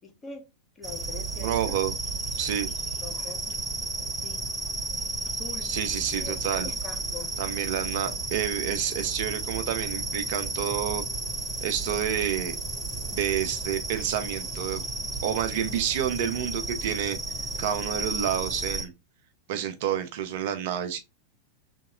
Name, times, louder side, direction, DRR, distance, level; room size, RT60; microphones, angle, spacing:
voice 1, 0.0-0.5 0.8-1.8 3.0-3.4 4.2-4.5 5.2-5.8 6.1-7.4, left 3 dB, 20° left, 0.7 m, -43 dB
sound 1, 0.8-18.8, right 2 dB, 5° right, 1.1 m, -33 dB
voice 2, 1.4-1.9 2.4-2.7 5.6-6.7 7.4-11.0 11.6-12.6 13.1-14.8 15.2-17.2 17.6-18.9 19.5-21.0, right 10 dB, 50° right, 0.4 m, -29 dB
2.8 x 2.7 x 2.3 m
figure-of-eight pair, 90°, 0 cm